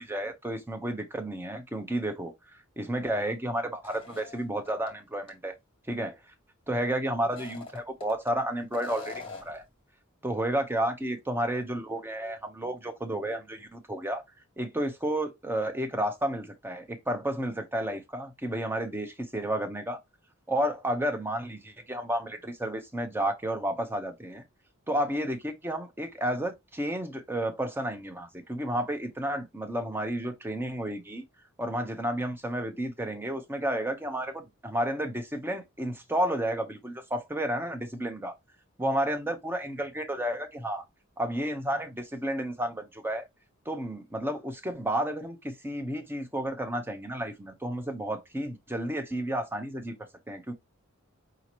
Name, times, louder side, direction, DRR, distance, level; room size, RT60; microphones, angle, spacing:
voice 1, 0.0-5.5 5.9-6.2 6.7-9.6 10.2-14.2 14.6-20.0 20.5-24.4 24.9-31.2 31.6-38.3 38.8-40.8 41.2-43.2 43.7-50.0 50.3-50.5, right 1 dB, 10° right, 0.7 m, -31 dB
sound 1, 3.8-4.9 5.3-5.4 7.2-8.3 8.7-9.6, left 4 dB, 25° left, 1.1 m, -44 dB
5.0 x 2.8 x 2.9 m
head